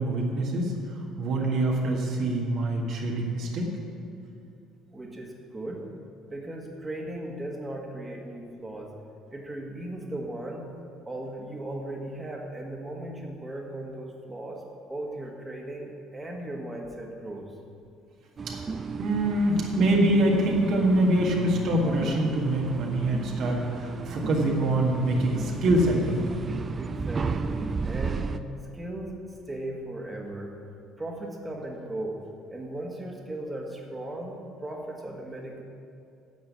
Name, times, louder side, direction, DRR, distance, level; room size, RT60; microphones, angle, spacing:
voice 1, 0.0-3.7 18.4-18.6 18.9-26.2, right 1 dB, 50° right, -1 dB, 1.7 m, -25 dB
voice 2, 4.9-5.9 6.3-8.9 9.3-10.7 11.1-14.6 14.9-17.5 26.8-28.3 28.7-30.5 31.0-32.2 32.5-35.6, right 1 dB, 15° right, 0 dB, 1.8 m, -37 dB
sound 1, 18.4-28.4, right 4 dB, 30° right, 0.5 m, -34 dB
9.5 x 7.7 x 8.2 m, 2.6 s
figure-of-eight pair, 55°, 0 cm